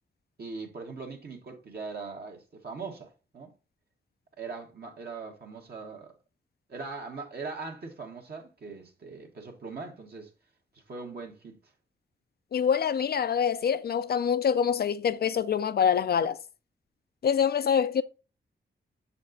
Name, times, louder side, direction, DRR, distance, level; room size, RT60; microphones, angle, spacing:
voice 1, 0.4-3.5 4.4-6.1 6.7-10.3 10.9-11.6, right 4 dB, 55° right, 1.4 m, -40 dB
voice 2, 12.5-16.4 17.2-18.0, left 7 dB, 55° left, 0.4 m, -25 dB
6.7 x 4.3 x 3.9 m
cardioid pair, 75°, 19 cm